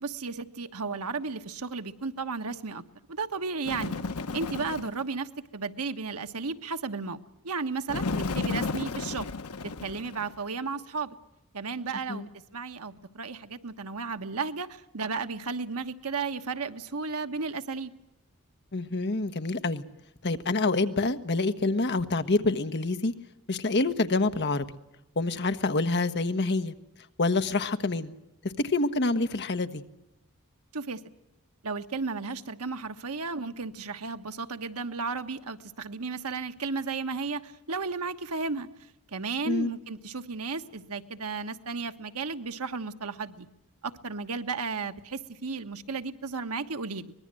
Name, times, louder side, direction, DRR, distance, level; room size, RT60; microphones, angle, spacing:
voice 1, 0.0-2.8 3.1-3.9 4.3-7.2 7.4-8.0 8.3-9.3 9.8-11.1 11.5-14.7 14.9-17.9 30.7-31.0 31.6-38.7 39.1-43.5 43.8-47.1, right 4 dB, 80° right, 8 dB, 1.3 m, -34 dB
Bird, 3.6-5.0 7.9-10.4, left 3 dB, 75° left, 0.9 m, -33 dB
voice 2, 18.7-19.8 20.2-23.1 23.5-24.6 25.2-26.7 27.2-28.1 28.6-29.8 39.4-39.7, left 3 dB, 50° left, 9 dB, 1.3 m, -27 dB
24.5 x 20.0 x 7.7 m, 0.92 s
head